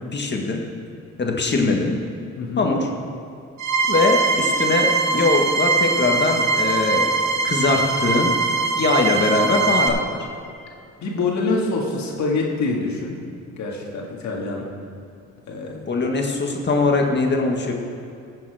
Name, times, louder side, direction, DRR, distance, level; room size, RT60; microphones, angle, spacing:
voice 1, 0.1-0.6 1.2-2.0 2.6-2.9 3.9-7.1 7.4-8.3 8.7-10.0 15.9-17.7, left 3 dB, 35° left, 1 dB, 1.7 m, -21 dB
voice 2, 2.4-2.7 11.0-13.2 13.6-14.7 15.5-15.9, left 3 dB, 65° left, -1 dB, 2.1 m, -25 dB
sound 1, 3.6-9.9, right 4 dB, 70° right, 1.3 m, -21 dB
15.0 x 7.2 x 4.9 m, 2.4 s
cardioid pair, 90°, 30 cm